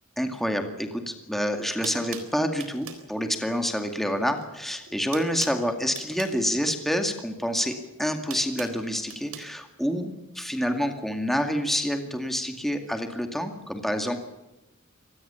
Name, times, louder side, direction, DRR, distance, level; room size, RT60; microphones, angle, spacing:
voice 1, 0.2-14.2, equal, ahead, 5 dB, 2.2 m, -28 dB
sound 1, 1.3-1.4 1.8-3.1 4.3-4.6 4.8-6.4 7.5-9.5, right 7 dB, 80° right, 3.8 m, -41 dB
24.5 x 19.0 x 7.1 m, 0.98 s
head